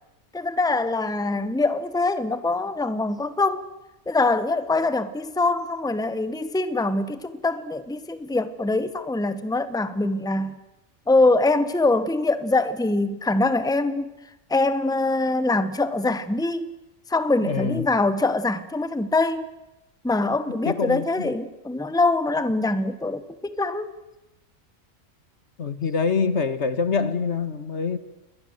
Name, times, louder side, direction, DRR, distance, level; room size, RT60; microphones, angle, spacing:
voice 1, 0.3-3.6 4.1-10.6 11.1-14.1 14.5-16.7 17.1-19.5 20.0-23.9, left 2 dB, 5° left, 1.2 m, -23 dB
voice 2, 17.4-17.9 20.7-21.3 25.6-28.0, left 5 dB, 65° left, 1.8 m, -25 dB
28.5 x 22.5 x 8.0 m
omnidirectional pair, 1.3 m